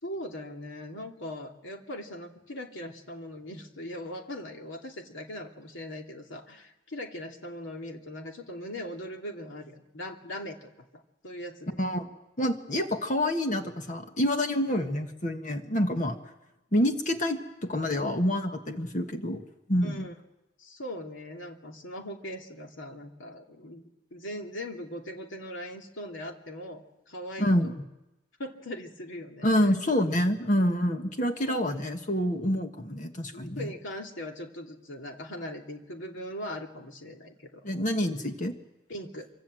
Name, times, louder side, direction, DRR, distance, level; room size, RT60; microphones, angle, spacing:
voice 1, 0.0-11.8 19.8-20.1 20.6-23.8 24.1-27.7 28.4-29.8 31.5-31.6 33.3-37.6 38.9-39.3, left 1 dB, 85° left, 2 dB, 2.8 m, -40 dB
voice 2, 11.8-12.1 12.4-16.2 16.7-19.4 19.7-20.1 27.4-27.7 29.4-33.7 37.6-38.5, equal, 40° left, 5 dB, 1.6 m, -27 dB
26.0 x 25.5 x 7.8 m, 0.96 s
head